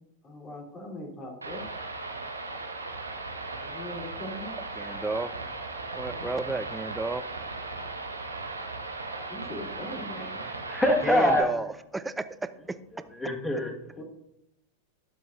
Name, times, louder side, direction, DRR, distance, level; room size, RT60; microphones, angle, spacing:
voice 1, 0.2-1.7 3.6-4.6 6.1-6.3 9.3-10.5 14.0-14.1, left 1 dB, 25° left, -2 dB, 3.7 m, -40 dB
sound 1, 1.4-11.4, right 3 dB, 80° right, 1.6 m, -37 dB
voice 2, 4.8-5.3 5.9-7.2 11.0-12.3 12.7-12.8, right 3 dB, 10° right, 13 dB, 0.5 m, -32 dB
voice 3, 10.2-11.5 13.2-14.0, left 1 dB, 10° left, 3 dB, 1.8 m, -25 dB
18.5 x 7.7 x 2.7 m, 0.79 s
figure-of-eight pair, 90°, 0 cm